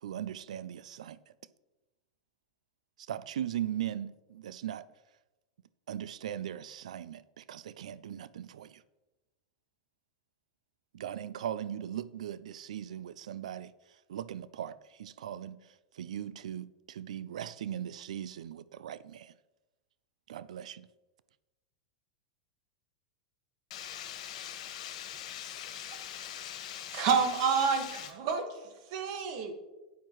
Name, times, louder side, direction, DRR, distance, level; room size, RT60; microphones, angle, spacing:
voice 1, 0.0-1.2 3.1-4.9 5.9-8.8 10.9-13.7 14.1-15.6 15.9-19.3 20.3-20.9, right 10 dB, 80° right, 0.4 m, -39 dB
voice 2, 23.7-28.1, left 10 dB, 70° left, 1.7 m, -42 dB
voice 3, 26.9-29.5, right 6 dB, 60° right, 1.6 m, -29 dB
10.5 x 9.2 x 3.1 m
hypercardioid pair, 115°, 4 cm